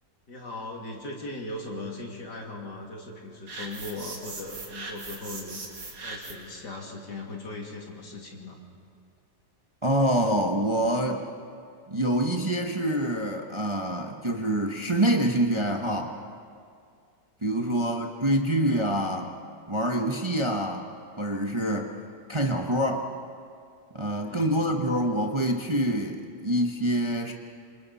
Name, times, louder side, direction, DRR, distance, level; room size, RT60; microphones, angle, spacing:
voice 1, 0.3-5.6 6.0-8.6 17.5-17.8 24.0-24.5, left 2 dB, 70° left, -1 dB, 3.3 m, -39 dB
sound 1, 3.5-6.5, right 3 dB, 80° right, 3.1 m, -39 dB
voice 2, 9.8-11.2 11.9-16.1 17.4-19.3 19.7-20.9 21.2-21.9 22.3-23.1 23.9-27.3, right 1 dB, 20° right, 2 dB, 0.9 m, -26 dB
27.0 x 26.5 x 4.2 m, 2.3 s
omnidirectional pair, 1.9 m